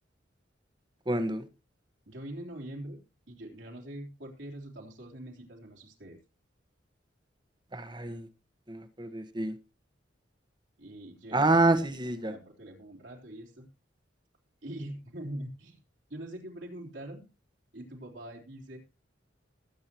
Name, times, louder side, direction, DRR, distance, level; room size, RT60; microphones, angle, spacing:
voice 1, 1.1-1.5 7.7-8.3 8.7-9.5 11.3-12.3, right 2 dB, 25° right, 10 dB, 1.3 m, -27 dB
voice 2, 2.1-3.0 3.3-6.2 10.8-11.9 12.2-13.7 14.6-15.8 16.1-17.2 17.7-18.8, right 1 dB, 70° right, -1 dB, 3.7 m, -43 dB
21.0 x 8.6 x 3.0 m, 0.29 s
head